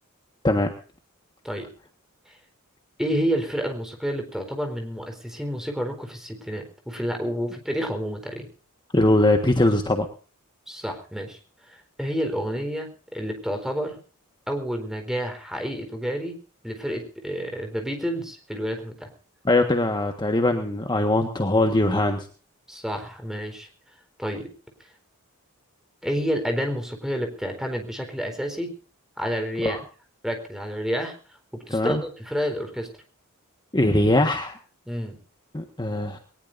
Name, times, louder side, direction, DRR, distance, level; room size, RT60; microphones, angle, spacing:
voice 1, 3.0-8.5 10.7-11.4 11.7-14.0 14.5-16.3 16.6-19.1 22.7-23.7 24.2-24.5 26.0-28.7 29.2-29.8 30.2-31.2 31.5-32.9 34.9-35.2, equal, ahead, 4 dB, 4.3 m, -29 dB
voice 2, 8.9-10.0 19.4-22.3 29.6-29.8 31.7-32.0 33.7-34.6 35.5-36.2, left 1 dB, 20° left, 5 dB, 1.5 m, -21 dB
21.5 x 19.5 x 2.7 m, 0.40 s
head